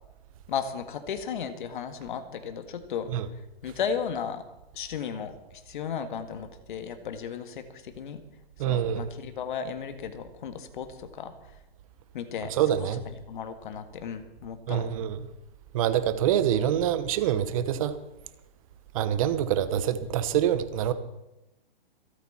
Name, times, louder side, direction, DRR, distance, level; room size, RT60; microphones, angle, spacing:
voice 1, 0.5-3.1 3.6-4.4 4.7-8.2 8.6-11.3 12.1-12.5 12.8-12.9 13.3-14.9, left 7 dB, 50° left, 8 dB, 1.8 m, -35 dB
voice 2, 8.6-9.1 12.6-13.0 14.7-15.2 15.7-17.9 18.9-20.9, right 10 dB, 35° right, 12 dB, 1.1 m, -25 dB
26.0 x 8.9 x 4.3 m, 0.94 s
hypercardioid pair, 150°, 31 cm